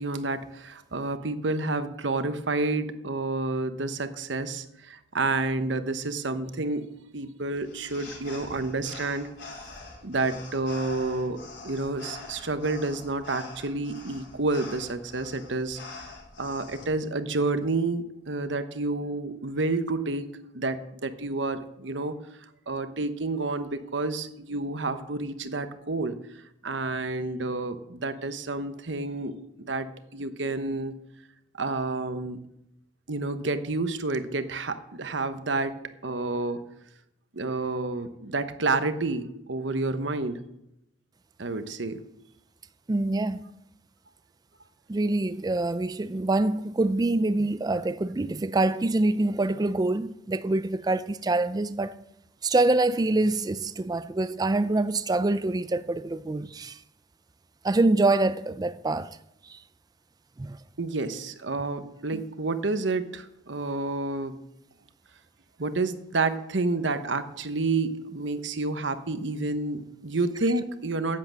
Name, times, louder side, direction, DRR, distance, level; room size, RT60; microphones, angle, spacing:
voice 1, 0.0-6.9 7.1-9.3 10.0-16.1 16.4-20.3 20.5-22.2 22.7-31.0 31.6-32.4 33.1-35.8 36.0-36.6 37.3-40.4 41.4-42.0 60.8-64.4 65.6-71.2, right 3 dB, 70° right, 1.0 m, -29 dB
sound 1, 7.6-16.8, left 3 dB, 65° left, 3.9 m, -44 dB
voice 2, 42.9-43.4 44.9-51.9 52.4-56.8 57.6-59.1 59.5-59.6 60.4-60.6, right 2 dB, 20° right, 0.4 m, -25 dB
10.5 x 8.6 x 7.6 m
head